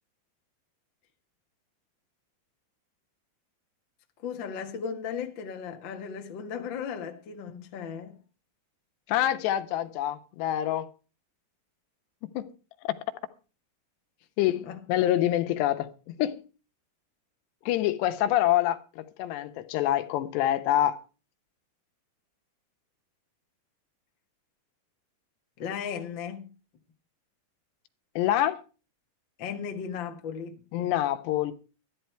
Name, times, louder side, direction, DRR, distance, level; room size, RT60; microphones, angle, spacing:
voice 1, 4.2-8.2 14.5-14.8 25.6-26.5 29.4-30.6, left 7 dB, 65° left, 1.1 m, -36 dB
voice 2, 9.1-10.9 12.3-12.5 12.8-12.9 14.4-16.4 17.7-21.0 28.2-28.6 30.7-31.5, left 13 dB, 90° left, 3.1 m, -26 dB
13.0 x 11.5 x 4.5 m
omnidirectional pair, 4.8 m